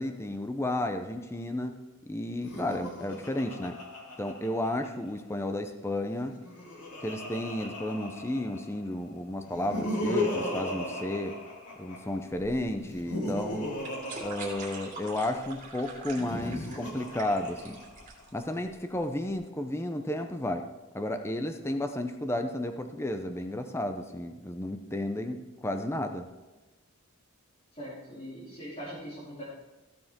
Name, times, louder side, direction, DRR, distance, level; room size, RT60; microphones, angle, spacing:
voice 1, 0.0-3.8 4.2-6.4 7.0-11.4 11.8-13.7 14.2-17.8 18.3-20.7 20.9-26.3, left 1 dB, 10° left, 6 dB, 0.6 m, -32 dB
Laughter, 2.3-5.1 6.2-8.8 9.4-12.2 12.8-15.2 16.1-18.2, left 1 dB, 90° left, 2.1 m, -36 dB
sound 1, 12.3-19.4, right 3 dB, 35° right, 2.6 m, -45 dB
voice 2, 27.7-29.4, equal, 30° left, -10 dB, 3.0 m, -41 dB
15.0 x 7.0 x 3.7 m, 1.1 s
head